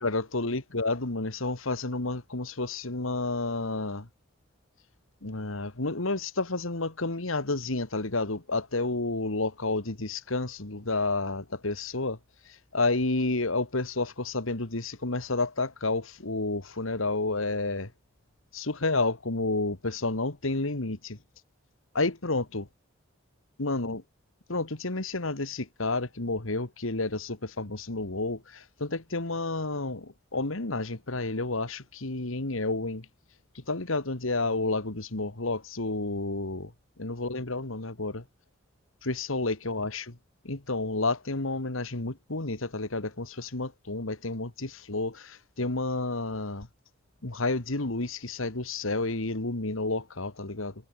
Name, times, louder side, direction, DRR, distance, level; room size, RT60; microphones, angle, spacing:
voice 1, 0.0-4.1 5.2-12.2 12.5-17.9 18.5-21.2 21.9-22.7 23.6-24.0 24.5-33.1 33.5-36.7 37.0-38.2 39.0-40.2 40.4-46.7 47.2-50.7, left 2 dB, 85° left, 2.1 m, -30 dB
head